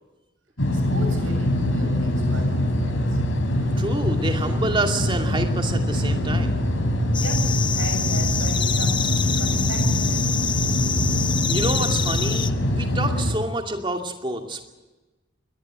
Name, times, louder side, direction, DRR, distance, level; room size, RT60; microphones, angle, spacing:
sound 1, 0.6-13.3, left 1 dB, 85° left, 4.4 m, -23 dB
voice 1, 0.7-3.2 7.2-10.3, right 2 dB, 80° right, 5 dB, 7.3 m, -37 dB
voice 2, 3.8-6.5 11.5-14.7, right 2 dB, 25° right, 4 dB, 2.5 m, -28 dB
sound 2, 7.1-12.5, left 7 dB, 25° left, 0.7 m, -27 dB
23.0 x 19.0 x 7.4 m, 1.2 s
head